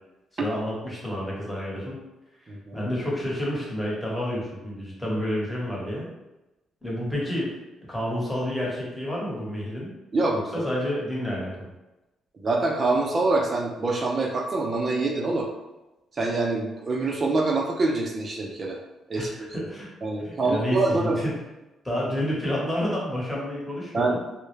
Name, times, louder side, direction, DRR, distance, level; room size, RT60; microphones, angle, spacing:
voice 1, 0.4-2.0 2.7-6.1 6.8-7.6 7.9-9.9 10.3-11.7 19.2-19.9 20.2-21.4 21.8-24.2, equal, 5° left, -5 dB, 1.0 m, -29 dB
voice 2, 2.5-2.8 10.1-10.6 12.4-15.5 16.1-18.8 19.1-19.3 19.6-19.7 20.0-21.2 23.9-24.2, right 3 dB, 40° right, 0 dB, 0.4 m, -25 dB
2.3 x 2.0 x 3.1 m, 1.0 s
cardioid pair, 90°, 0 cm